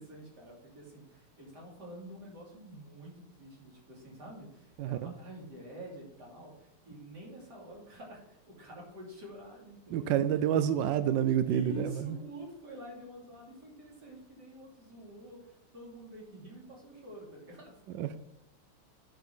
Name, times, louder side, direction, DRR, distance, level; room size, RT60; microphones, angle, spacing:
voice 1, 0.0-10.5 11.5-17.8, equal, 50° right, -2 dB, 3.6 m, -47 dB
voice 2, 4.8-5.1 9.9-12.2 17.9-18.2, right 10 dB, 75° right, 12 dB, 1.0 m, -29 dB
8.8 x 6.1 x 5.8 m, 0.88 s
omnidirectional pair, 2.4 m